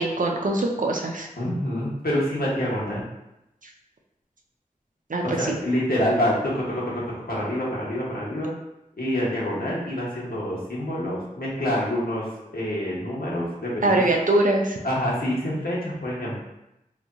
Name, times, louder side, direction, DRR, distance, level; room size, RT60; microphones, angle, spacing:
voice 1, 0.0-1.3 5.1-5.6 13.8-14.8, right 2 dB, 65° right, 1 dB, 0.6 m, -22 dB
voice 2, 1.4-3.0 5.2-8.5 9.0-12.3 12.5-14.0 14.8-16.4, equal, 85° left, -6 dB, 1.0 m, -26 dB
3.1 x 2.3 x 3.9 m, 0.90 s
wide cardioid pair, 55°, 15 cm